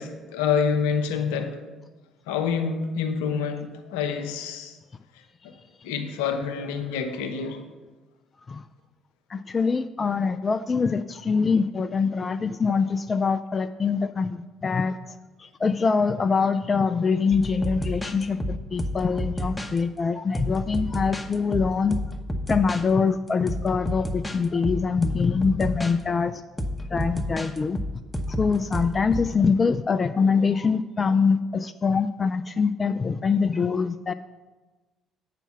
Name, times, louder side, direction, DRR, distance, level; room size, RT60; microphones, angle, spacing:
voice 1, 0.0-1.6 2.3-4.8 5.4-5.5 5.8-7.6, left 6 dB, 75° left, 7 dB, 0.7 m, -27 dB
voice 2, 9.3-22.0 22.5-26.4 26.9-27.8 28.3-34.1, left 5 dB, 35° left, 11 dB, 0.3 m, -24 dB
sound 1, 17.3-19.8 20.3-22.8 23.3-25.9 26.6-29.3, equal, 10° left, 0.9 m, -30 dB
7.9 x 5.8 x 5.7 m, 1.2 s
figure-of-eight pair, 50°, 0 cm